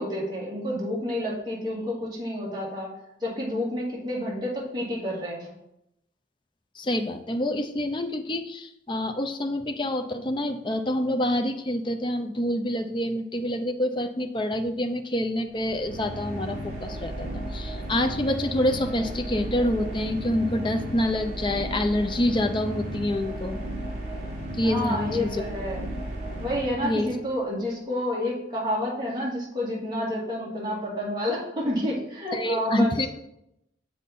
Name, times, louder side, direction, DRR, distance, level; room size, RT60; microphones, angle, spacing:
voice 1, 0.0-2.9 3.2-5.5 24.6-25.8 26.4-33.1, left 1 dB, 25° right, -6 dB, 2.2 m, -29 dB
voice 2, 6.8-23.6 24.6-25.4 26.8-27.1 32.3-33.1, left 1 dB, 25° left, 5 dB, 0.6 m, -27 dB
sound 1, 15.5-27.3, right 1 dB, 45° right, 1.9 m, -34 dB
7.4 x 5.4 x 4.3 m, 0.80 s
head